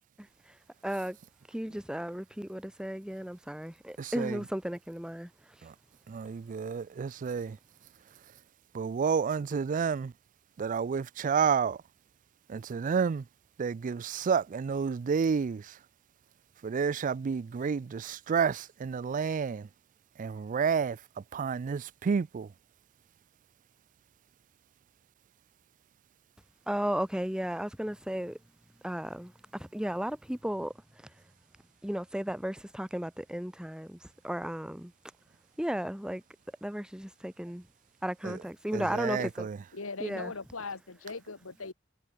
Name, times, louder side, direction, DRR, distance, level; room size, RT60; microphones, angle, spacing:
voice 1, 0.8-1.2 1.5-5.3 26.7-28.4 28.8-30.7 31.8-34.9 35.6-36.2 36.6-37.7 38.0-39.5 40.0-40.3, equal, 5° right, 1.0 m, -34 dB
voice 2, 4.0-4.4 5.6-5.7 6.1-7.6 8.7-10.1 10.6-11.8 12.5-13.3 13.6-15.8 16.6-19.7 20.2-22.5 38.2-38.4 38.7-39.6, right 6 dB, 40° right, 0.3 m, -30 dB
voice 3, 39.7-41.7, left 3 dB, 90° left, 1.9 m, -39 dB
head